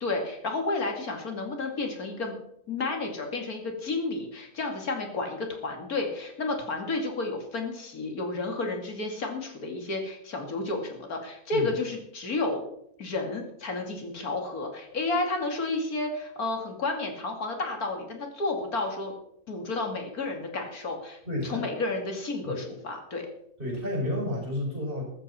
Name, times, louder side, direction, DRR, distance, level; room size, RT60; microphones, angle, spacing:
voice 1, 0.0-2.3 2.7-12.6 13.0-19.1 19.5-23.3, left 3 dB, 90° left, 3 dB, 2.9 m, -31 dB
voice 2, 21.3-21.7 22.4-22.6 23.6-25.0, left 1 dB, 35° right, -2 dB, 6.5 m, -31 dB
14.5 x 13.0 x 4.3 m, 0.75 s
omnidirectional pair, 1.5 m